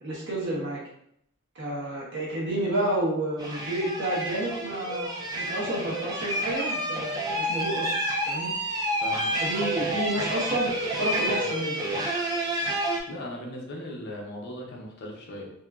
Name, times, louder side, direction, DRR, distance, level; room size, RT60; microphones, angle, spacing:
voice 1, 0.0-0.8 1.5-5.1 5.3-7.9 8.3-8.5 9.4-10.7 11.0-11.8, right 1 dB, 60° right, -4 dB, 0.7 m, -30 dB
sound 1, 3.4-13.0, right 1 dB, 20° right, 0.3 m, -29 dB
voice 2, 9.0-9.4 12.7-15.5, left 1 dB, 50° left, -1 dB, 0.6 m, -39 dB
2.8 x 2.3 x 2.3 m, 0.73 s
head